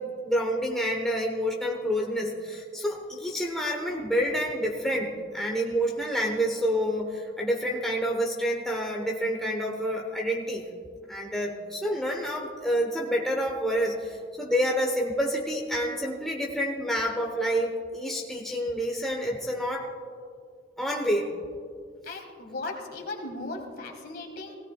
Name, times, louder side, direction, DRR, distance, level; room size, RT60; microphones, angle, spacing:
voice 1, 0.0-10.6 11.1-19.9 20.8-21.3, equal, ahead, -1 dB, 1.0 m, -28 dB
voice 2, 22.0-24.6, left 2 dB, 50° left, 2 dB, 1.9 m, -37 dB
17.0 x 16.5 x 2.4 m, 2.2 s
head